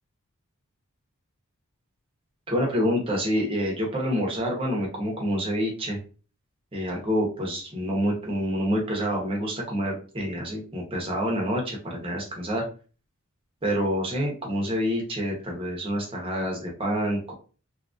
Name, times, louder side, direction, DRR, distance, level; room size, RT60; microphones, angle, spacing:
voice 1, 2.5-6.0 6.7-12.7 13.6-17.3, equal, 25° right, -1 dB, 0.8 m, -27 dB
2.9 x 2.5 x 2.4 m, 0.37 s
head